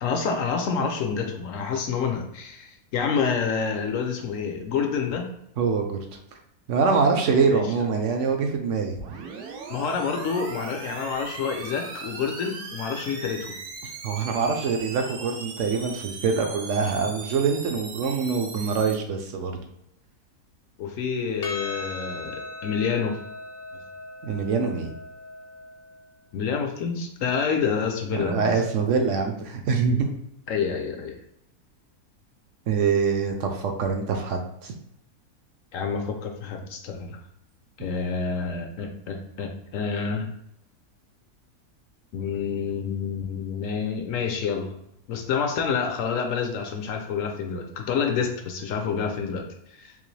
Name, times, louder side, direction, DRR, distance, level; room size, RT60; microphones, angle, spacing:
voice 1, 0.0-5.3 7.5-7.6 9.7-13.5 20.8-23.2 26.3-28.6 30.5-31.1 35.7-37.2 37.8-40.3 42.1-44.8 45.1-49.5 49.8-49.9, left 6 dB, 70° left, 4 dB, 0.9 m, -28 dB
voice 2, 5.6-6.0 6.7-9.0 14.0-19.5 24.2-24.9 28.1-30.1 32.7-34.7, right 5 dB, 65° right, 4 dB, 0.8 m, -24 dB
sound 1, 8.9-18.9, right 4 dB, 90° right, 1.2 m, -39 dB
Percussion, 21.4-26.0, left 2 dB, 50° left, 0.5 m, -38 dB
3.7 x 2.9 x 3.2 m, 0.77 s
omnidirectional pair, 1.6 m